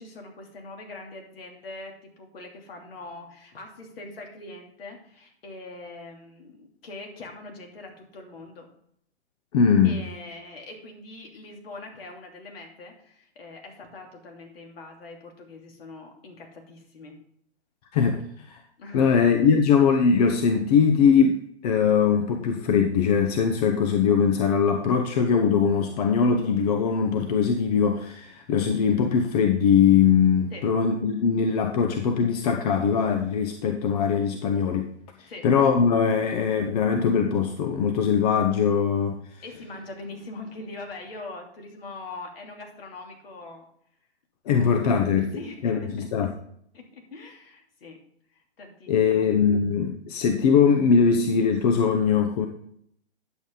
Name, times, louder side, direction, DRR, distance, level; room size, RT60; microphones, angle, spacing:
voice 1, 0.0-8.7 9.8-17.2 18.8-19.2 30.5-30.7 35.3-35.5 39.4-43.7 44.4-44.8 45.3-46.1 46.7-48.0 48.6-49.3, left 2 dB, 60° left, 1 dB, 3.0 m, -42 dB
voice 2, 9.5-10.0 17.9-18.2 18.5-18.6 18.9-34.9 35.2-39.1 44.5-45.3 45.6-45.8 46.1-46.3 48.9-52.5, left 6 dB, 35° left, 6 dB, 0.8 m, -21 dB
10.5 x 7.6 x 3.9 m, 0.69 s
hypercardioid pair, 130°, 33 cm